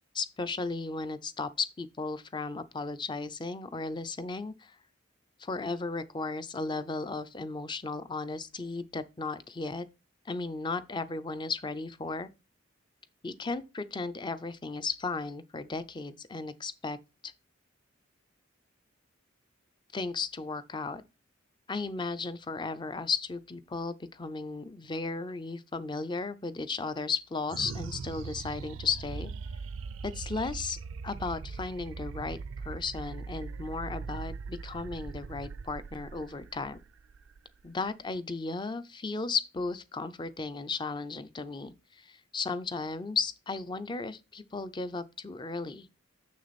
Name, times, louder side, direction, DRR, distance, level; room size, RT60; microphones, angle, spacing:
voice 1, 0.1-4.8 5.4-9.9 10.3-12.3 13.2-17.0 17.2-17.3 19.9-21.0 21.7-29.3 30.0-30.8 31.0-36.8 37.6-46.0, left 4 dB, 25° left, 0.5 m, -35 dB
sound 1, 27.5-38.2, right 4 dB, 75° right, 0.4 m, -40 dB
6.8 x 6.3 x 4.1 m
head